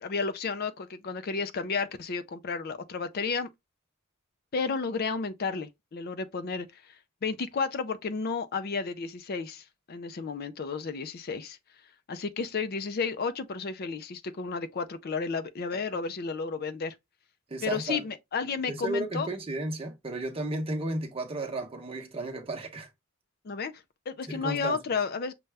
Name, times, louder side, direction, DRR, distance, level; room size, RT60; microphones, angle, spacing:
voice 1, 0.0-3.5 4.5-7.0 7.2-11.6 12.1-16.9 17.6-19.3 23.4-23.7 24.1-25.3, left 5 dB, 45° left, 0.4 m, -32 dB
voice 2, 17.5-18.0 18.7-22.9 24.3-24.8, right 2 dB, 25° right, 0.8 m, -33 dB
6.5 x 2.2 x 3.3 m
head